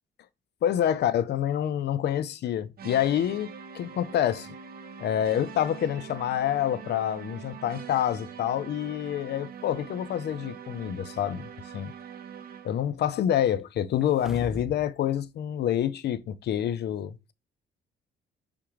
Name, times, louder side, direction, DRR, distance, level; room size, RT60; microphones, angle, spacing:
voice 1, 0.6-3.5 3.7-4.5 5.0-11.9 12.6-17.3, left 10 dB, 60° left, 0.4 m, -27 dB
sound 1, 2.8-12.9, right 7 dB, 50° right, 0.7 m, -43 dB
sound 2, 14.0-14.9 15.2-15.3, left 1 dB, ahead, 0.4 m, -39 dB
4.6 x 3.6 x 3.0 m
cardioid pair, 90°, 20 cm